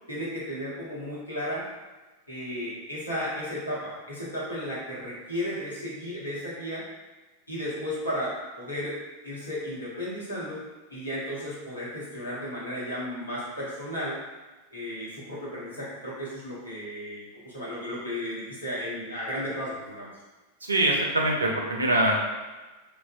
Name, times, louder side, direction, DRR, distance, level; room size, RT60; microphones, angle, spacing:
voice 1, 0.1-1.7 2.3-6.8 7.5-9.0 9.2-10.6 10.9-14.2 14.7-20.1, equal, 80° left, -7 dB, 0.8 m, -34 dB
voice 2, 20.6-22.2, right 1 dB, 75° right, 0 dB, 0.4 m, -23 dB
2.5 x 2.0 x 2.4 m, 1.2 s
figure-of-eight pair, 90°, 0 cm